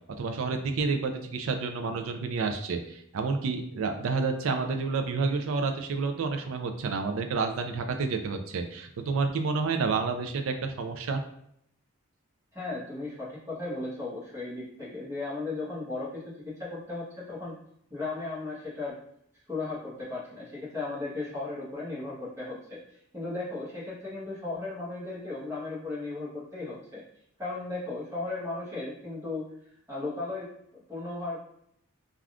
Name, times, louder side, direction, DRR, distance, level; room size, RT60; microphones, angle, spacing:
voice 1, 0.2-11.2, right 4 dB, 70° right, 6 dB, 0.4 m, -29 dB
voice 2, 12.5-17.5 17.9-19.0 19.5-22.8 23.1-27.0 27.4-29.5 29.9-31.4, left 3 dB, 15° right, -7 dB, 1.0 m, -36 dB
3.4 x 2.4 x 2.4 m, 0.72 s
head